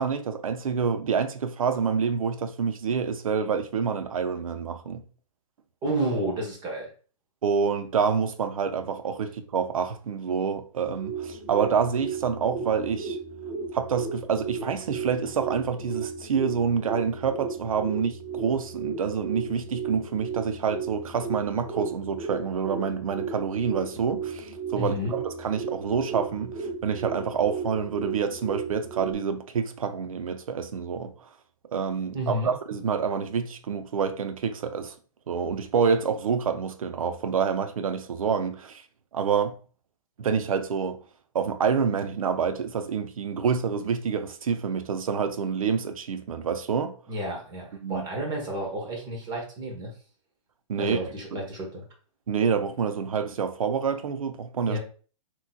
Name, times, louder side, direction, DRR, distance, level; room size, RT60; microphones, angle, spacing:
voice 1, 0.0-5.0 7.4-13.2 13.7-31.1 31.7-34.9 35.3-38.8 39.1-39.6 40.2-41.0 41.3-46.9 47.8-48.1 50.7-51.4 52.3-54.8, right 6 dB, 85° right, 0.5 m, -27 dB
voice 2, 5.8-6.9 24.7-25.1 32.1-32.5 47.1-49.9 50.8-51.8 54.7-54.8, right 1 dB, 25° right, 1.2 m, -31 dB
sound 1, 10.8-29.1, right 5 dB, 5° left, 1.2 m, -35 dB
3.7 x 3.0 x 2.2 m
hypercardioid pair, 135°, 17 cm